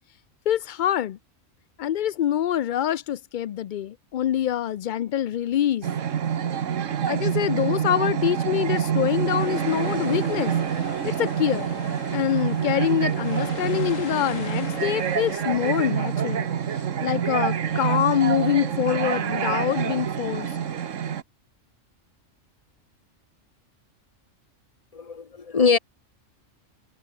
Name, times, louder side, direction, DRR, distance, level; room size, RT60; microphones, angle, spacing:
voice 1, 0.5-1.2 1.8-5.9 7.1-10.5 11.0-11.7 12.1-16.5 16.7-20.5, left 11 dB, 65° left, 0.4 m, -25 dB
sound 1, 5.8-21.2, right 8 dB, 75° right, 1.4 m, -27 dB
sound 2, 8.8-20.7, left 6 dB, 85° left, 2.1 m, -42 dB
voice 2, 24.9-25.8, left 5 dB, 30° left, 1.1 m, -22 dB
omnidirectional pair, 1.3 m